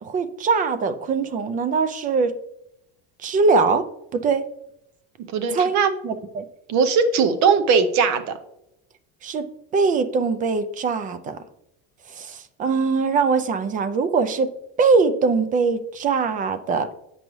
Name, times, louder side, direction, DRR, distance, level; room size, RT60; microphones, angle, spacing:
voice 1, 0.0-2.3 3.2-3.8 4.1-4.4 5.5-5.8 6.0-6.4 9.2-9.4 9.7-11.4 12.2-14.5 14.8-16.9, right 4 dB, 25° right, 11 dB, 0.3 m, -22 dB
voice 2, 5.3-5.9 6.7-8.3, right 5 dB, 55° right, 10 dB, 0.7 m, -19 dB
8.0 x 5.4 x 3.1 m, 0.82 s
cardioid pair, 160°, 35 cm